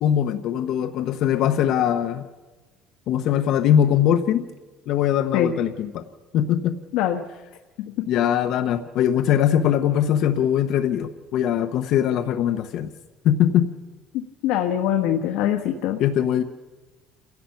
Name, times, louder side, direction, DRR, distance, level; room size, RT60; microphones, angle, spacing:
voice 1, 0.0-2.2 3.1-4.4 4.9-6.0 6.3-6.8 8.1-12.9 13.2-13.7 16.0-16.4, left 10 dB, 50° left, 7 dB, 0.8 m, -21 dB
voice 2, 14.4-16.0, left 11 dB, 70° left, 3 dB, 1.3 m, -22 dB
29.0 x 16.5 x 5.7 m, 1.2 s
cardioid pair, 180°, 0 cm